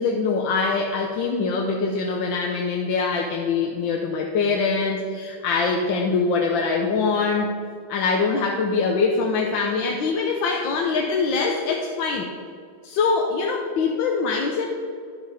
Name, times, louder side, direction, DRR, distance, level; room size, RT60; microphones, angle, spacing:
voice 1, 0.0-7.6 7.9-12.3 12.8-14.7, left 4 dB, 70° left, 1 dB, 1.5 m, -23 dB
11.5 x 6.3 x 5.4 m, 2.3 s
omnidirectional pair, 2.3 m